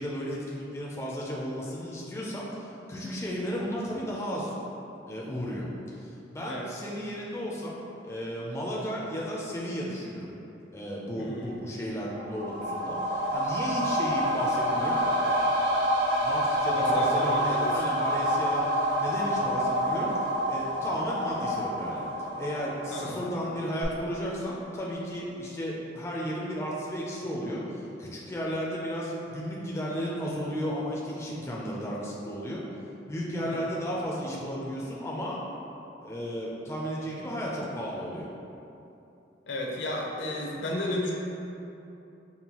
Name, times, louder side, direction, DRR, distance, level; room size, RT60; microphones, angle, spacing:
voice 1, 0.0-4.5 5.1-7.8 8.0-10.3 10.7-15.0 16.2-20.1 20.5-22.0 22.4-32.6 33.1-35.4 36.0-38.3, equal, 15° left, -5 dB, 0.3 m, -34 dB
voice 2, 11.2-11.6 16.6-17.8 18.1-18.4 22.9-23.2 33.4-33.7 39.5-41.1, left 1 dB, 75° left, -2 dB, 0.6 m, -34 dB
sound 1, 12.0-23.5 23.8-23.9, equal, 65° right, 0.5 m, -27 dB
5.3 x 2.2 x 2.9 m, 2.9 s
head